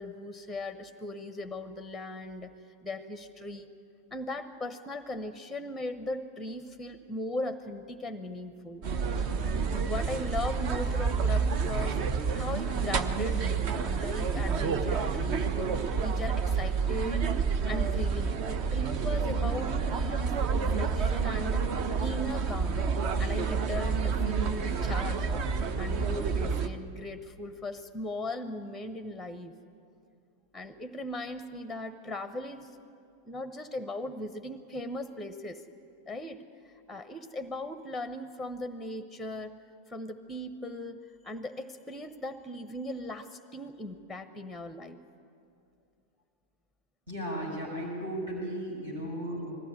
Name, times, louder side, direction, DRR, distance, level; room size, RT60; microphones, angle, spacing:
voice 1, 0.0-2.5 2.8-3.7 4.1-8.8 9.4-15.7 16.0-17.3 17.7-21.7 22.0-22.8 23.2-29.5 30.5-32.8 33.3-35.6 36.1-36.4 36.9-39.6 39.9-45.0, left 1 dB, ahead, 11 dB, 0.9 m, -38 dB
sound 1, 8.8-26.7, right 5 dB, 40° right, 1.0 m, -29 dB
voice 2, 47.1-49.5, equal, 65° right, -2 dB, 7.4 m, -35 dB
20.5 x 14.5 x 9.7 m, 2.5 s
figure-of-eight pair, 90°, 0 cm